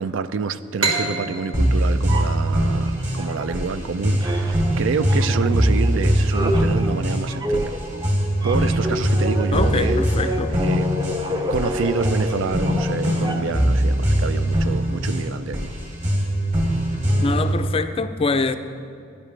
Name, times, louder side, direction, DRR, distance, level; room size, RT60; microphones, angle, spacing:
voice 1, 0.0-7.7 8.4-10.0 10.6-10.9 11.5-15.7, right 5 dB, 65° right, 13 dB, 0.4 m, -27 dB
sound 1, 0.8-4.2, right 3 dB, 80° right, 1.6 m, -28 dB
sound 2, 1.5-17.6, equal, 35° right, 2.5 m, -22 dB
sound 3, 2.1-3.9 4.2-13.7, equal, 20° right, 0.7 m, -29 dB
voice 2, 9.5-10.5 16.9-18.6, left 3 dB, 25° left, 9 dB, 0.4 m, -24 dB
17.5 x 10.0 x 3.2 m, 2.6 s
head